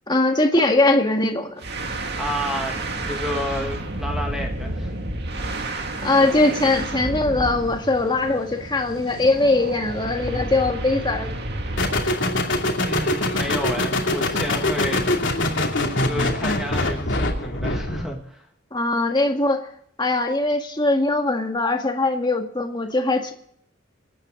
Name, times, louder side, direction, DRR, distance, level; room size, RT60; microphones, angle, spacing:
voice 1, 0.1-1.6 6.0-11.3 18.7-19.7 20.0-23.3, left 2 dB, 25° left, 4 dB, 1.8 m, -21 dB
sound 1, 1.6-12.1, right 1 dB, 55° right, 2.1 m, -30 dB
voice 2, 1.9-4.9 12.8-15.0 16.0-18.5, equal, ahead, 1 dB, 1.9 m, -31 dB
sound 2, 11.8-18.1, left 1 dB, 70° left, 2.8 m, -23 dB
26.0 x 9.7 x 3.8 m, 0.67 s
head